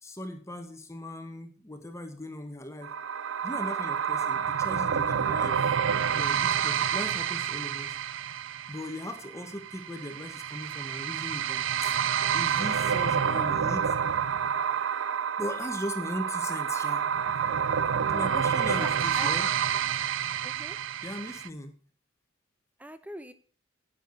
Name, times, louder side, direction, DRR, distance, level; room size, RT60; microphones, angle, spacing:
voice 1, 0.0-2.9 3.4-5.7 6.1-7.9 8.7-11.9 12.3-14.0 15.4-17.1 18.1-19.5 21.0-21.7, left 1 dB, 15° left, 6 dB, 1.3 m, -38 dB
sound 1, 2.8-21.5, right 8 dB, 65° right, 0.5 m, -28 dB
voice 2, 18.7-19.3 20.4-20.8 22.8-23.3, right 1 dB, 10° right, 12 dB, 0.9 m, -41 dB
10.0 x 8.9 x 4.0 m, 0.43 s
head